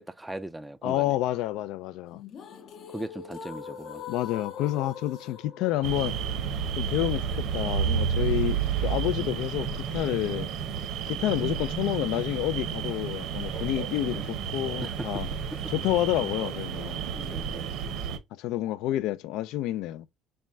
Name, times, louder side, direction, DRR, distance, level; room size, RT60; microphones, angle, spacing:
voice 1, 0.0-1.1 2.9-4.0 14.1-14.3 14.8-15.1 15.5-15.7 17.1-17.6, right 1 dB, 5° right, 0.3 m, -38 dB
voice 2, 0.8-2.2 4.1-6.1 6.8-10.5 11.1-15.3 15.7-17.0 18.3-20.1, left 14 dB, 75° left, 0.3 m, -29 dB
sound 1, 2.1-8.1, left 7 dB, 50° left, 0.7 m, -43 dB
sound 2, 5.8-18.2, right 7 dB, 65° right, 0.7 m, -31 dB
4.3 x 2.2 x 3.4 m
cardioid pair, 125°, 0 cm